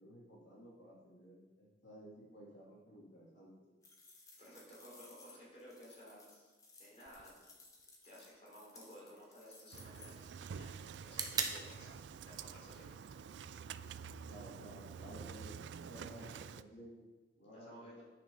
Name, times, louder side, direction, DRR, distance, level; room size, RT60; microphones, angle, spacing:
voice 1, 0.0-3.7 11.8-11.9 14.3-17.0 17.4-17.8, equal, 75° left, -6 dB, 2.8 m, -55 dB
sound 1, 3.8-10.4, left 3 dB, 20° left, 1.2 m, -60 dB
voice 2, 4.3-6.5 6.8-7.4 8.0-12.0 12.2-12.9 16.2-16.4 17.5-18.0, equal, 35° left, -5 dB, 3.5 m, -56 dB
sound 2, 7.1-15.0, right 5 dB, 20° right, 0.7 m, -47 dB
Engine starting, 9.7-16.6, right 6 dB, 70° right, 0.3 m, -48 dB
9.4 x 6.3 x 5.5 m, 1.2 s
head